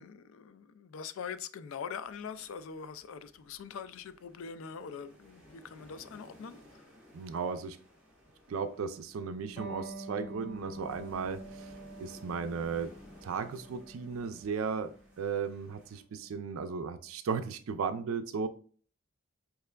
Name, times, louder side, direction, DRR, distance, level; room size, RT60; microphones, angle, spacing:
voice 1, 0.0-6.8, left 6 dB, 85° left, 0.4 m, -43 dB
sound 1, 1.9-16.0, equal, 5° right, 1.2 m, -59 dB
voice 2, 7.1-7.8 8.5-11.7 12.0-12.9 13.2-18.5, right 5 dB, 90° right, 0.4 m, -35 dB
Electric guitar, 9.6-16.7, right 1 dB, 25° left, 0.8 m, -48 dB
4.6 x 3.3 x 2.2 m
head